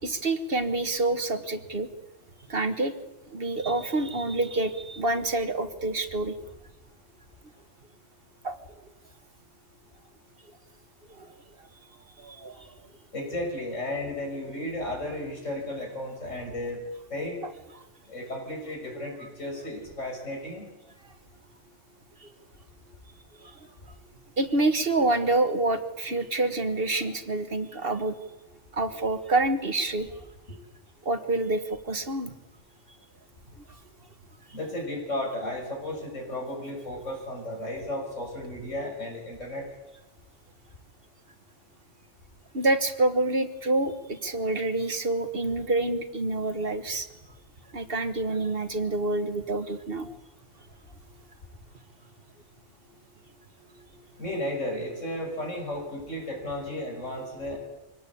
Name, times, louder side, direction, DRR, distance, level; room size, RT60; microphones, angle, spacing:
voice 1, 0.0-1.9 2.5-2.9 3.3-6.4 8.4-8.6 11.2-11.3 12.2-12.7 22.2-22.3 23.4-23.5 24.4-28.1 28.7-30.1 31.0-32.3 42.5-47.1 47.7-50.2, right 2 dB, 50° right, 9 dB, 1.7 m, -27 dB
voice 2, 13.1-16.8 17.1-17.4 18.1-20.7 34.5-39.7 54.2-57.6, left 1 dB, 90° left, 1 dB, 7.1 m, -34 dB
24.5 x 18.5 x 8.6 m, 1.0 s
omnidirectional pair, 1.3 m